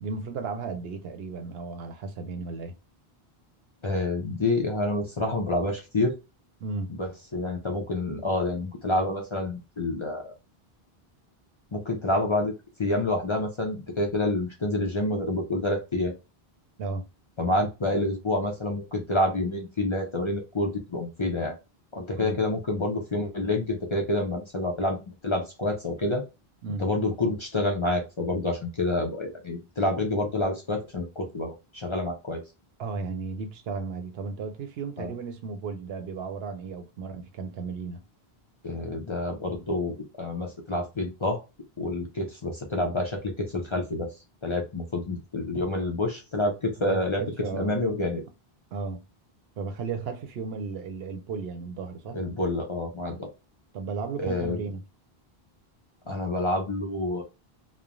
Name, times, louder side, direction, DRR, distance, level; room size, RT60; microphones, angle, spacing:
voice 1, 0.0-2.8 6.6-6.9 16.8-17.0 22.2-22.4 26.6-26.9 32.8-38.0 46.8-47.7 48.7-49.0 49.6-52.2 53.7-54.8, right 4 dB, 75° right, 0.8 m, -34 dB
voice 2, 3.8-6.1 6.9-10.3 11.7-12.5 12.8-16.1 17.4-21.6 21.9-26.2 26.8-32.4 35.0-35.1 38.6-41.4 41.8-44.1 44.4-47.2 47.5-48.2 52.1-53.3 54.2-54.6 56.1-57.2, left 2 dB, 35° left, 0.5 m, -28 dB
3.1 x 2.0 x 2.4 m
omnidirectional pair, 1.0 m